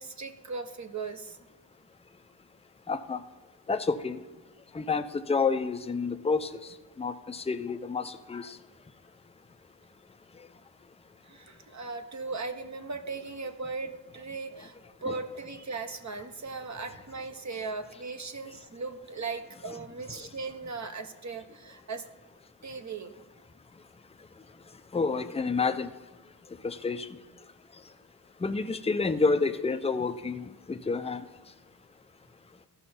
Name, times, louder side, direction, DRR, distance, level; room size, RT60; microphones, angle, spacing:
voice 1, 0.0-1.4 11.3-14.7 15.0-22.0 22.6-23.1, right 4 dB, 40° right, 7 dB, 0.8 m, -38 dB
voice 2, 2.9-3.2 3.7-4.2 4.7-6.5 7.0-8.6 15.1-15.2 24.9-25.9 26.6-27.1 28.4-31.2, left 4 dB, 15° left, 9 dB, 0.5 m, -29 dB
14.0 x 5.6 x 4.3 m, 1.2 s
wide cardioid pair, 95°, 42 cm